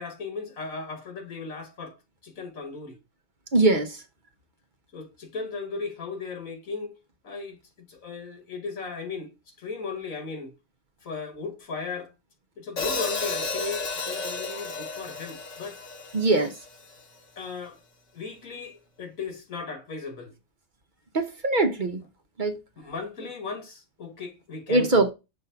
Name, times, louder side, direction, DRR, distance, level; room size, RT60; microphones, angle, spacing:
voice 1, 0.0-3.0 4.9-7.0 7.2-10.5 11.0-12.1 12.6-15.8 17.4-17.8 18.1-20.3 22.8-25.1, left 4 dB, 80° left, 2.0 m, -36 dB
voice 2, 3.5-4.0 16.1-16.5 21.1-22.0 22.4-22.6 24.7-25.1, right 2 dB, 40° right, 0.8 m, -22 dB
Hi-hat, 12.8-16.9, left 3 dB, 65° left, 1.7 m, -32 dB
6.5 x 2.6 x 5.6 m
omnidirectional pair, 1.4 m